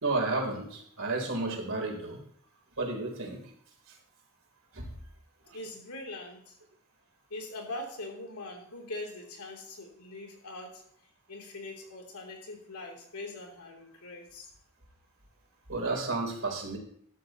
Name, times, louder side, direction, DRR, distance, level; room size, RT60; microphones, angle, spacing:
voice 1, 0.0-2.2 2.8-3.4 3.9-4.0 4.7-4.9 5.4-5.6 15.7-16.8, right 3 dB, 60° right, 1 dB, 3.6 m, -32 dB
voice 2, 5.5-6.6 7.3-10.8 11.3-14.5, left 2 dB, 85° left, 1 dB, 3.3 m, -42 dB
13.5 x 11.5 x 3.0 m, 0.63 s
head